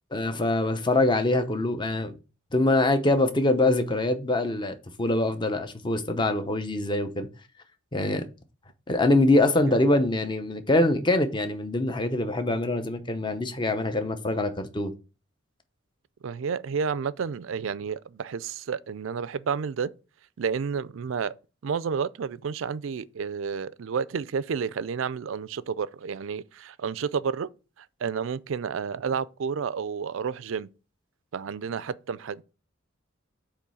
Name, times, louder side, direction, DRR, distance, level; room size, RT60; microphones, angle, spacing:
voice 1, 0.1-2.1 2.5-7.3 7.9-8.2 8.9-14.9, left 2 dB, 25° left, 0.8 m, -24 dB
voice 2, 16.2-19.9 20.4-21.3 21.6-27.5 27.8-30.7 31.3-32.4, right 6 dB, 70° right, 0.4 m, -30 dB
8.4 x 3.1 x 6.2 m
head